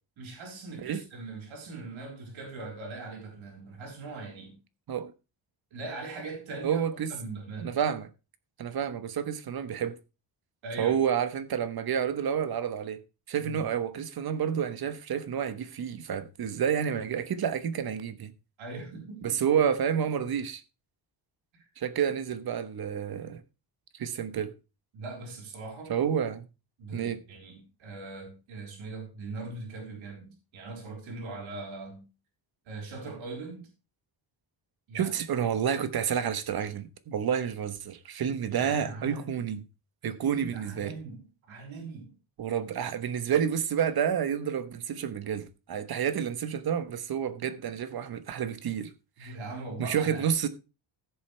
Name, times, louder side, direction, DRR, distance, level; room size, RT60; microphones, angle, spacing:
voice 1, 0.2-4.6 5.7-6.8 7.1-7.8 10.6-10.9 13.4-13.7 18.6-19.4 21.5-21.6 24.9-25.9 26.8-32.0 32.6-33.7 34.9-35.1 38.3-39.4 40.2-42.1 49.2-50.3, right 3 dB, 80° right, 4.6 m, -41 dB
voice 2, 6.6-7.1 7.6-8.1 8.6-10.0 10.8-13.0 13.3-18.3 19.2-20.6 21.8-23.4 23.9-24.5 25.9-26.5 26.9-27.2 34.9-39.6 40.0-40.9 42.4-48.9 49.2-49.3 49.8-50.5, right 8 dB, 50° right, 1.2 m, -29 dB
16.0 x 7.0 x 3.3 m
cardioid pair, 160°, 46 cm